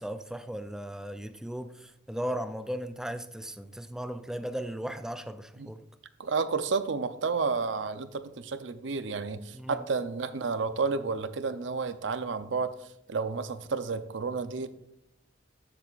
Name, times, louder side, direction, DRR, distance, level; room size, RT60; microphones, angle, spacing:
voice 1, 0.0-5.8 9.5-9.8, equal, 5° right, 0.4 m, -36 dB
voice 2, 6.2-12.7 13.1-14.7, right 4 dB, 70° right, 0.6 m, -31 dB
13.0 x 7.5 x 2.5 m
head